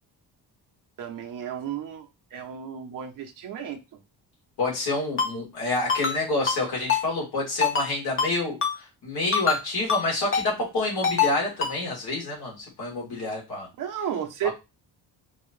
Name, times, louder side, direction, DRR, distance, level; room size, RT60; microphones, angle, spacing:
voice 1, 1.0-3.8 13.8-14.5, right 9 dB, 55° right, 3 dB, 0.9 m, -33 dB
voice 2, 4.6-13.7, left 2 dB, 75° left, -3 dB, 3.0 m, -28 dB
Ringtone, 5.2-5.3 5.9-6.2 6.5-6.6 6.9-7.0 7.6-7.9 8.2-8.3 8.6-8.7 9.3-9.6 9.9-10.0 10.3-10.5 11.0-11.3 11.6-11.7, left 6 dB, 35° left, 1.0 m, -24 dB
5.5 x 2.9 x 3.2 m, 0.25 s
cardioid pair, 165°, 39 cm